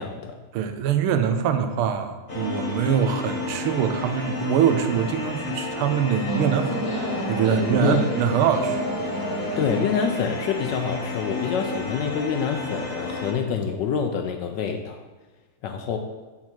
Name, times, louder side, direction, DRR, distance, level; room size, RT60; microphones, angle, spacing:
voice 1, 0.0-0.4 7.8-8.0 9.6-15.0 15.6-16.0, left 6 dB, 75° left, 5 dB, 1.1 m, -26 dB
voice 2, 0.5-6.8 7.3-8.8 9.1-9.3, right 8 dB, 85° right, 8 dB, 1.6 m, -23 dB
sound 1, 2.3-13.3, left 2 dB, 30° left, 1.2 m, -32 dB
sound 2, 6.3-11.4, right 2 dB, 50° right, 1.6 m, -30 dB
7.7 x 5.9 x 4.4 m, 1.3 s
omnidirectional pair, 2.3 m